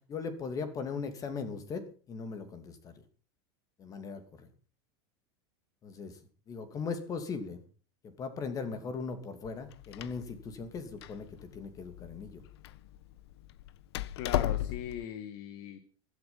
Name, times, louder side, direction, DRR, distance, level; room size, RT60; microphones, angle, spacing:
voice 1, 0.1-3.0 3.8-4.5 5.8-6.2 6.5-7.6 8.0-12.4, left 5 dB, 25° left, 10 dB, 2.7 m, -39 dB
Door, 9.4-15.0, left 13 dB, 80° left, 1.1 m, -37 dB
voice 2, 14.2-15.8, left 10 dB, 50° left, 10 dB, 2.0 m, -40 dB
15.5 x 12.5 x 5.7 m, 0.40 s
supercardioid pair, 150°, 13 cm